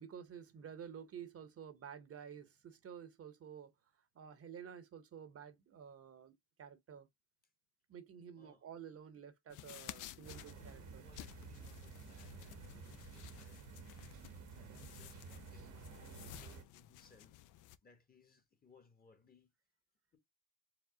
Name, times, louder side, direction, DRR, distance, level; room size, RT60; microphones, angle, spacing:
voice 1, 0.0-3.7 4.1-7.1 7.9-11.0, right 8 dB, 50° right, 0.8 m, -51 dB
voice 2, 8.4-8.7 10.1-13.9 14.5-17.4 17.8-19.5 20.1-20.2, left 4 dB, 30° left, 1.2 m, -67 dB
sound 1, 9.5-17.8, left 13 dB, 85° left, 0.5 m, -54 dB
sound 2, 10.2-16.6, right 5 dB, 85° right, 1.1 m, -52 dB
4.8 x 2.1 x 3.7 m
cardioid pair, 90°, 30 cm